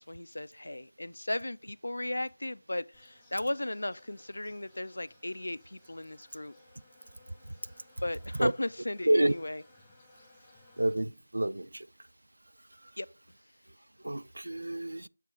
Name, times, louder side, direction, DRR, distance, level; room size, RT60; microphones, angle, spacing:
voice 1, 0.0-6.5 8.0-9.6 13.0-13.1, left 1 dB, 70° left, 0.3 m, -36 dB
Insect, 2.9-10.9, left 2 dB, 5° left, 1.3 m, -61 dB
voice 2, 10.8-11.9 14.0-15.1, right 1 dB, 75° right, 0.3 m, -28 dB
7.3 x 3.8 x 3.7 m
figure-of-eight pair, 165°, 0 cm